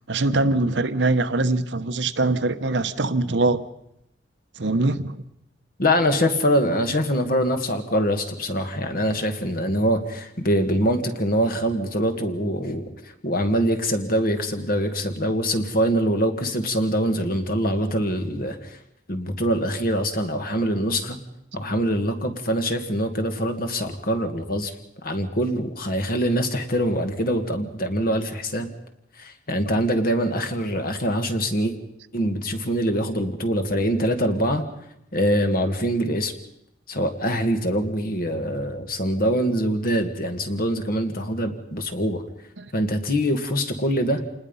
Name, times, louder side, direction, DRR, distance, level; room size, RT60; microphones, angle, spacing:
voice 1, 0.1-3.6 4.6-5.2 42.6-42.7, right 2 dB, 70° right, 1.0 m, -22 dB
voice 2, 5.8-12.9 13.2-18.8 19.1-21.2 21.5-24.7 25.0-28.7 29.2-31.7 32.1-34.6 35.1-36.3 36.9-42.2 42.7-44.2, equal, 50° left, 2.1 m, -24 dB
27.5 x 20.0 x 5.6 m
head